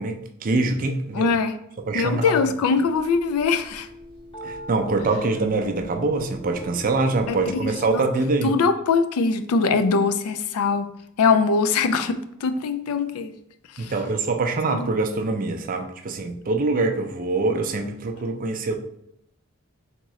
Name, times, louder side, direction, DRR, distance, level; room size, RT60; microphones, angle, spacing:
voice 1, 0.0-1.3 1.9-2.4 4.4-8.6 13.8-18.8, right 3 dB, 40° right, 5 dB, 0.4 m, -24 dB
voice 2, 1.1-1.6 1.9-3.9 7.3-8.0 8.4-10.9 11.2-13.3 13.8-13.9 14.7-14.9, left 4 dB, 85° left, 10 dB, 0.4 m, -22 dB
sound 1, 2.9-8.0, equal, 25° left, 0.8 m, -41 dB
3.6 x 3.6 x 3.1 m, 0.77 s
head